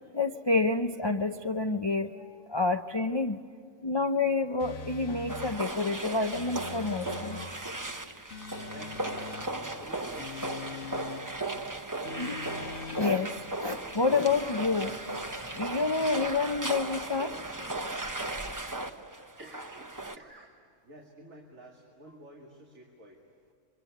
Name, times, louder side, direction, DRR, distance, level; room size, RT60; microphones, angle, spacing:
voice 1, 0.1-3.4 3.8-8.1 12.2-12.4 12.9-13.3 13.6-15.2 15.5-17.3, left 3 dB, 35° left, 7 dB, 0.4 m, -29 dB
sound 1, 4.6-5.6 6.3-7.5 8.3-9.5 10.2-11.3 12.0-13.2, left 5 dB, 55° left, 1.3 m, -42 dB
sound 2, 5.3-20.2, right 2 dB, 15° right, 0.8 m, -36 dB
voice 2, 8.7-9.4 9.8-11.0 19.4-20.6 20.8-23.2, right 1 dB, 75° right, -1 dB, 2.8 m, -51 dB
26.0 x 23.5 x 9.2 m, 2.2 s
omnidirectional pair, 1.4 m